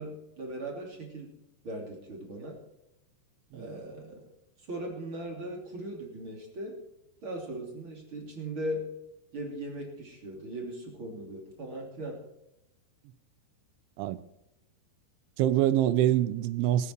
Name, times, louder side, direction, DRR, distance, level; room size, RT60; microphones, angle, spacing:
voice 1, 0.0-1.3 1.6-2.6 3.5-4.2 4.6-6.8 7.2-8.9 9.3-12.2, right 1 dB, 30° right, 2.9 m, -38 dB
voice 2, 15.4-16.9, right 12 dB, 85° right, 3.1 m, -25 dB
22.0 x 9.5 x 4.6 m
omnidirectional pair, 5.5 m